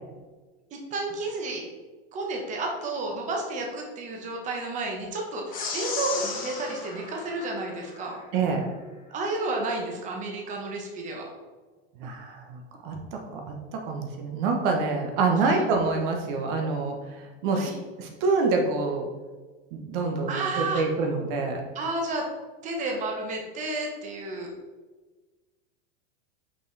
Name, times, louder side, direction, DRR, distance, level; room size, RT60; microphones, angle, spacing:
voice 1, 0.7-1.6 2.1-8.2 9.1-11.3 15.4-15.6 17.5-17.8 20.3-20.8 21.7-22.3 22.6-24.5, right 2 dB, 25° right, 1 dB, 1.0 m, -31 dB
sound 1, 5.5-8.2, left 4 dB, 30° left, 1.0 m, -35 dB
voice 2, 8.3-8.7 12.0-13.0 13.3-13.4 13.7-16.9 17.4-17.7 18.0-19.1 19.7-21.6, right 4 dB, 55° right, 2 dB, 1.0 m, -26 dB
6.1 x 4.7 x 3.3 m, 1.3 s
supercardioid pair, 150°, 30 cm